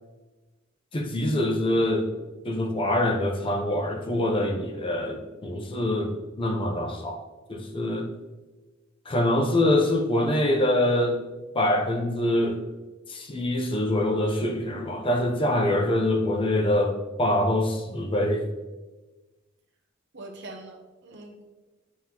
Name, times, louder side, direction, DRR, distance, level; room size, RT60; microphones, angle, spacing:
voice 1, 0.9-2.1 2.4-7.2 7.5-8.1 9.1-11.2 11.5-12.6 13.1-18.5, left 1 dB, 25° left, 3 dB, 0.6 m, -24 dB
voice 2, 20.1-21.4, right 2 dB, 60° right, 3 dB, 0.9 m, -43 dB
9.1 x 3.7 x 2.9 m, 1.2 s
head